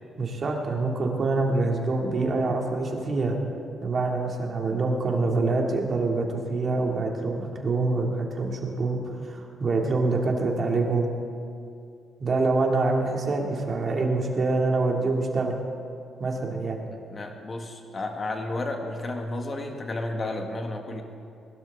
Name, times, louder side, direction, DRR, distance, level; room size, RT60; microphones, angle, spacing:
voice 1, 0.2-3.4 3.8-11.1 12.2-15.6 16.2-16.8, right 3 dB, 45° right, 1 dB, 2.3 m, -25 dB
voice 2, 17.1-21.0, left 2 dB, 35° left, 3 dB, 1.8 m, -32 dB
21.0 x 12.0 x 3.6 m, 2.5 s
cardioid pair, 90°, 0 cm